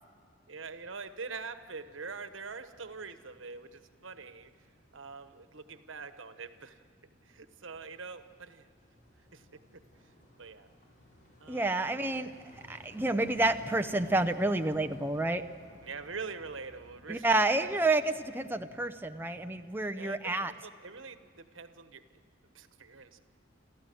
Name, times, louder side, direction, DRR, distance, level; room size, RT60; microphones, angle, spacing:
voice 1, 0.5-4.5 4.9-6.8 7.2-8.7 9.3-9.5 9.7-9.8 10.4-10.7 11.4-12.3 15.8-17.7 19.9-22.0 22.5-23.2, right 4 dB, 90° right, 9 dB, 1.3 m, -44 dB
sound 1, 1.9-19.6, equal, 45° left, 5.3 m, -57 dB
voice 2, 11.5-12.3 12.7-15.4 17.1-20.5, right 2 dB, 10° right, 7 dB, 0.6 m, -29 dB
29.5 x 14.0 x 7.8 m, 2.1 s
head